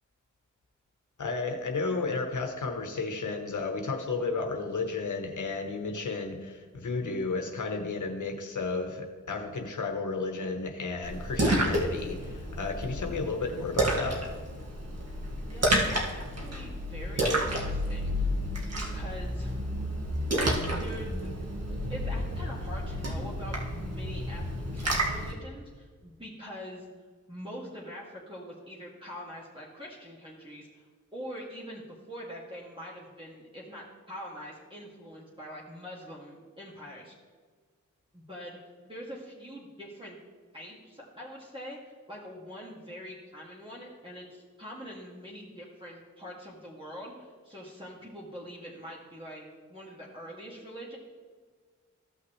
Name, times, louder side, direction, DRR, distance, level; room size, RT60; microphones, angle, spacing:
voice 1, 1.2-14.2, left 3 dB, 75° left, 4 dB, 1.0 m, -33 dB
Splash splatter, 11.0-25.3, right 1 dB, 55° right, 1.8 m, -30 dB
voice 2, 15.4-18.1 18.6-19.6 20.6-21.3 21.7-26.9 27.3-30.9 31.1-37.2 38.1-38.6 38.8-40.2 40.5-51.0, equal, 15° right, -5 dB, 2.1 m, -44 dB
15.0 x 5.8 x 3.2 m, 1.5 s
cardioid pair, 45°, 31 cm